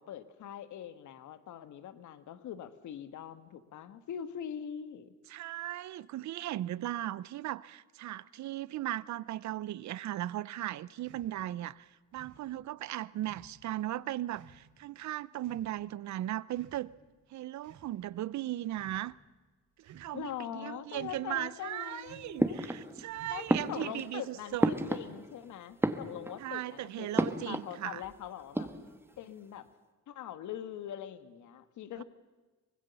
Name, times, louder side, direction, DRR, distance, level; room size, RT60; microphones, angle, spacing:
voice 1, 0.0-5.1 20.1-22.6 23.3-28.7 29.2-29.6 30.1-32.0, left 10 dB, 75° left, 1.5 m, -43 dB
voice 2, 5.3-16.9 17.3-19.2 19.8-24.7 26.4-28.0 32.0-32.1, right 14 dB, 65° right, 0.7 m, -37 dB
sound 1, 11.0-11.3 12.1-12.4 13.2-13.5 14.3-14.6 15.4-15.7 16.5-17.1 17.6-17.9 18.6-19.0 19.8-20.3 20.9-21.3 22.0-22.4 23.1-23.6, right 8 dB, 80° right, 4.0 m, -55 dB
sound 2, 22.4-23.1 23.5-25.4 25.7-26.6 27.2-27.8 28.0-28.1 28.4-29.1, right 1 dB, 5° right, 1.4 m, -32 dB
24.0 x 19.5 x 6.9 m
cardioid pair, 105°, 30 cm